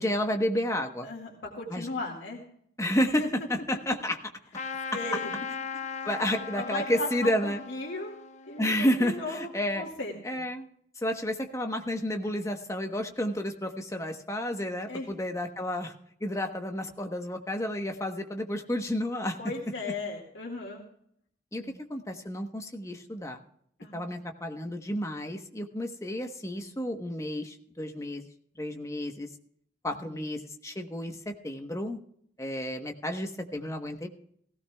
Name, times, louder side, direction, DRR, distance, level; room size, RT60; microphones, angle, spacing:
voice 1, 0.0-1.1 1.7-1.9 2.8-4.2 6.0-7.6 8.6-9.8 10.2-10.7 11.0-15.9 16.2-19.4 21.5-23.4 23.9-28.3 28.6-29.3 29.8-32.0 32.4-34.1, left 1 dB, 15° left, 4 dB, 1.1 m, -31 dB
voice 2, 1.0-2.4 3.2-3.3 4.9-5.3 6.5-9.5 9.8-10.4 14.9-15.1 19.4-20.8 21.6-21.7 23.8-24.1 29.9-30.2, left 2 dB, 90° left, -1 dB, 2.1 m, -37 dB
Trumpet, 4.5-9.6, left 5 dB, 40° left, 0.8 m, -39 dB
17.5 x 16.0 x 2.3 m, 0.66 s
head